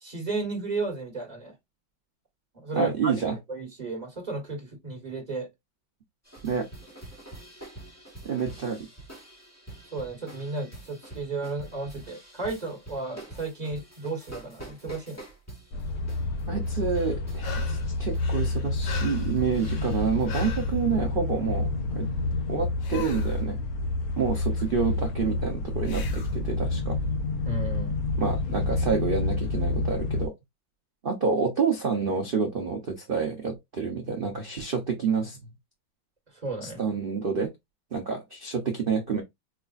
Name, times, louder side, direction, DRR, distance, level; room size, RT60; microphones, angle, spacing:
voice 1, 0.0-1.5 2.5-3.1 3.5-5.5 9.9-15.2 27.4-27.9 36.3-36.8, right 3 dB, 25° right, 1.3 m, -33 dB
voice 2, 2.7-3.4 6.4-6.7 8.2-8.9 16.5-22.1 22.5-23.6 24.2-27.0 28.2-30.3 31.0-35.5 36.6-37.5 37.9-39.2, right 5 dB, 85° right, 0.4 m, -28 dB
sound 1, 6.2-20.3, right 2 dB, 10° left, 1.0 m, -46 dB
sound 2, 15.7-30.3, left 2 dB, 60° left, 1.0 m, -29 dB
sound 3, 16.9-17.9 18.2-20.8 22.8-23.4 25.8-26.4 29.3-29.4, left 3 dB, 85° left, 1.8 m, -38 dB
4.8 x 2.4 x 2.4 m
omnidirectional pair, 2.1 m